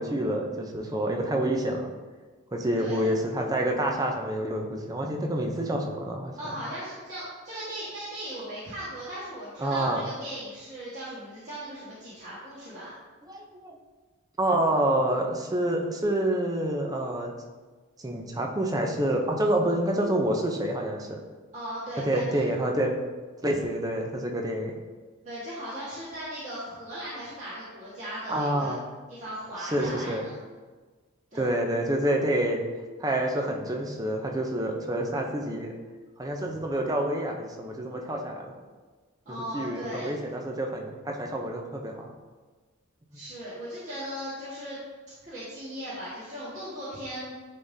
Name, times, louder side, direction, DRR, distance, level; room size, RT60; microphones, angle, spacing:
voice 1, 0.0-1.9 2.5-6.4 9.6-10.0 13.3-13.8 14.4-17.3 18.0-21.2 22.0-22.9 23.4-24.7 28.3-28.8 29.6-30.2 31.3-32.6 33.0-35.7 36.2-38.6 39.5-42.1, right 1 dB, 20° right, 2 dB, 0.6 m, -27 dB
voice 2, 2.8-3.1 6.4-12.9 21.5-22.4 25.2-28.8 29.1-30.3 31.3-31.5 39.2-40.1 43.1-44.8 45.2-47.3, equal, 35° right, -12 dB, 1.6 m, -37 dB
10.0 x 3.7 x 2.7 m, 1.4 s
head